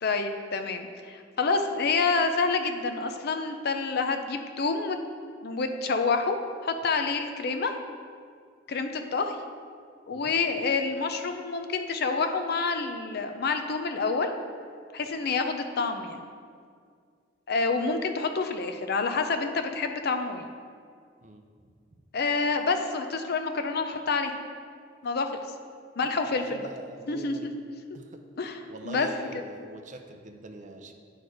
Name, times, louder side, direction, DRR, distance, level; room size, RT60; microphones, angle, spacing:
voice 1, 0.0-5.0 5.4-6.4 6.6-7.7 8.7-9.4 10.1-14.3 14.9-16.3 17.5-20.5 22.1-24.3 25.0-25.3 26.0-26.6 27.1-27.5 28.4-28.6 28.9-29.1, left 4 dB, 55° left, 7 dB, 0.5 m, -28 dB
voice 2, 26.0-27.5 27.9-28.2 28.7-30.9, right 1 dB, 40° right, 5 dB, 0.6 m, -44 dB
9.0 x 4.4 x 4.8 m, 2.1 s
head